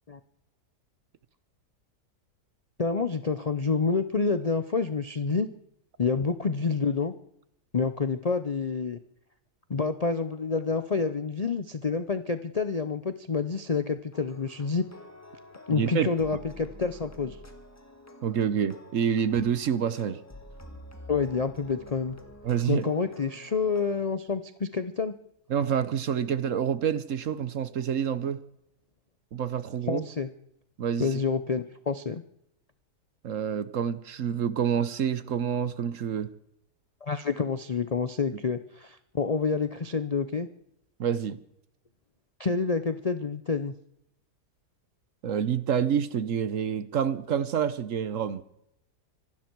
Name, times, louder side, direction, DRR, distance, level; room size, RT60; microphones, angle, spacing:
voice 1, 2.8-5.5 6.0-7.1 7.7-9.0 9.7-14.8 15.7-17.4 21.1-22.2 22.7-25.1 29.9-30.3 31.0-32.2 37.0-40.5 42.4-43.7, left 5 dB, 50° left, 0.4 m, -28 dB
sound 1, 14.1-24.1, left 1 dB, 10° left, 1.6 m, -49 dB
voice 2, 15.7-16.1 18.2-20.2 22.4-22.9 25.5-28.4 29.3-30.0 30.8-31.2 33.2-36.3 41.0-41.4 45.2-48.4, right 8 dB, 60° right, 1.1 m, -27 dB
25.5 x 12.0 x 4.6 m
omnidirectional pair, 1.7 m